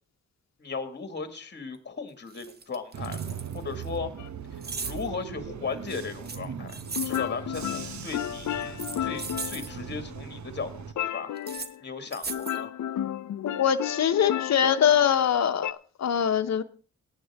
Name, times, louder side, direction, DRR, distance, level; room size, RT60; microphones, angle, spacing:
voice 1, 0.6-4.1 4.8-11.3 11.8-12.7, left 5 dB, 35° left, 8 dB, 2.0 m, -37 dB
sound 1, 1.7-1.8 2.3-3.9 4.6-5.1 6.2-7.3 8.6-9.7 11.4-11.7 12.1-12.6, right 4 dB, 35° right, 1.0 m, -37 dB
Bus / Engine, 2.9-10.9, right 7 dB, 75° right, 1.1 m, -39 dB
sound 2, 4.2-4.3 7.0-10.2 11.0-11.8 12.3-15.7, left 11 dB, 80° left, 0.7 m, -33 dB
voice 2, 13.4-16.6, left 9 dB, 65° left, 9 dB, 1.1 m, -23 dB
18.5 x 9.1 x 3.6 m, 0.40 s
wide cardioid pair, 140°, 29 cm